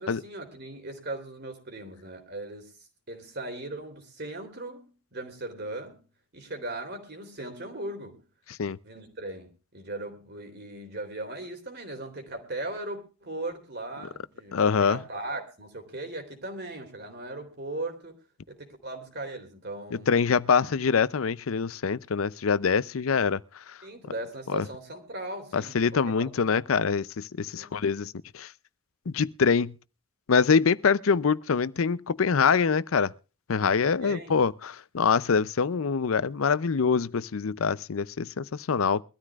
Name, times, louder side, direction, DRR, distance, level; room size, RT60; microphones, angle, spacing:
voice 1, 0.0-2.7 3.1-6.0 6.3-8.2 8.8-18.2 18.5-20.1 23.8-26.1 27.6-27.8 34.0-34.4, right 2 dB, 50° right, 3.4 m, -38 dB
voice 2, 14.5-15.0 19.9-23.8 24.5-24.6 25.5-28.5 29.1-29.8 30.3-33.1 33.5-39.0, left 5 dB, 80° left, 0.6 m, -25 dB
23.0 x 13.5 x 2.4 m
head